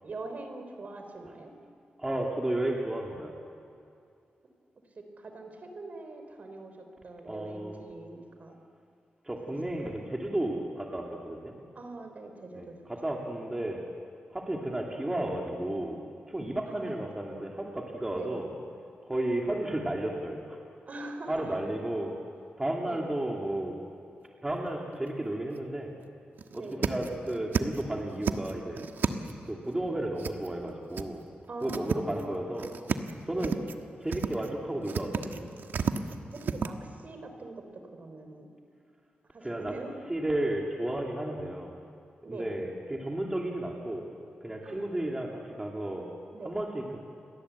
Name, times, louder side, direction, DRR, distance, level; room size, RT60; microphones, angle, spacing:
voice 1, 0.0-1.5 5.0-8.6 9.6-10.0 11.8-12.8 16.7-16.9 18.1-18.4 20.9-21.7 22.8-23.1 26.5-27.1 31.5-32.3 33.3-33.5 36.3-38.5 39.3-39.9 42.2-42.5 44.6-45.3 46.3-46.6, right 2 dB, 45° right, 6 dB, 4.0 m, -43 dB
voice 2, 2.0-3.3 7.2-7.8 9.2-11.5 12.5-13.8 14.3-16.0 16.3-18.5 19.1-20.6 21.3-22.1 22.6-23.8 24.4-25.9 26.5-28.9 29.5-31.2 31.6-32.7 33.3-33.6 34.0-35.5 39.4-39.7 40.1-41.7 42.3-44.0 44.4-46.1 46.4-47.0, right 1 dB, 15° right, -1 dB, 2.6 m, -33 dB
sound 1, 24.7-25.1 25.5-25.6 26.0-26.1 26.4-27.8 28.1-29.5 30.2-30.7 30.9-31.0 31.4-32.2 32.5-33.1 33.4-33.8 34.1-34.5 34.8-36.7, right 6 dB, 70° right, 1.4 m, -32 dB
30.0 x 22.5 x 8.3 m, 2.5 s
wide cardioid pair, 145°, 4 cm